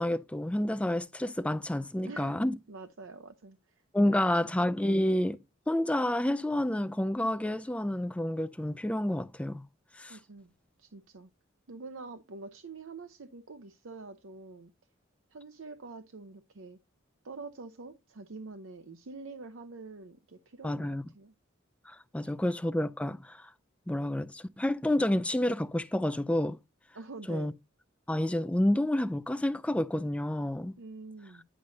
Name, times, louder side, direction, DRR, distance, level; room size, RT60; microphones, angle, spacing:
voice 1, 0.0-2.5 3.9-9.6 10.0-10.2 20.6-21.0 21.9-23.5 23.9-26.6 27.3-27.5 28.1-30.8, left 1 dB, 5° left, 0.3 m, -29 dB
voice 2, 2.0-3.8 4.2-4.6 10.1-10.5 10.8-11.3 11.7-14.7 15.3-16.8 17.2-20.9 21.1-21.3 22.2-22.5 26.9-27.5 30.8-31.4, right 3 dB, 75° right, 0.7 m, -46 dB
10.0 x 6.4 x 2.7 m
head